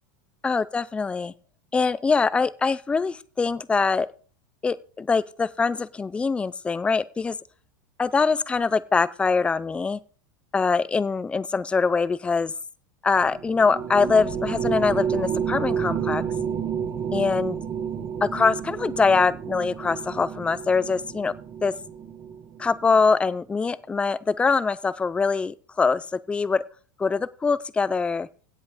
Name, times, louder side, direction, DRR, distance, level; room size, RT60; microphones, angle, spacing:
voice 1, 0.4-1.3 1.7-4.1 4.6-7.4 8.0-10.0 10.5-12.5 13.0-16.2 17.1-17.6 18.2-21.3 21.6-21.7 22.6-26.6 27.0-28.3, left 4 dB, 10° left, 17 dB, 0.5 m, -23 dB
sound 1, 13.2-22.9, right 7 dB, 30° right, 1.7 m, -30 dB
16.5 x 5.7 x 4.9 m, 0.40 s
supercardioid pair, 155°, 11 cm